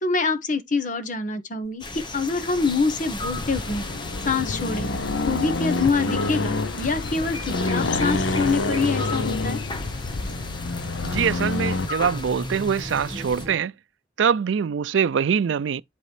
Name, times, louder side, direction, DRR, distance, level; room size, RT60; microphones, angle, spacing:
voice 1, 0.0-3.8 4.2-4.9 5.2-9.6, left 4 dB, 45° left, 1.3 m, -25 dB
sound 1, 1.8-13.5, left 2 dB, 25° left, 0.9 m, -36 dB
sound 2, 2.3-2.7 3.1-3.5 4.6-4.7 4.9-5.2 5.6-6.9 7.1-13.6, equal, 35° right, 1.9 m, -38 dB
Accelerating revving vroom, 3.2-11.9, left 3 dB, 85° left, 0.8 m, -27 dB
voice 2, 11.0-13.7 14.2-15.8, right 7 dB, 85° right, 0.4 m, -23 dB
11.0 x 4.1 x 3.3 m
head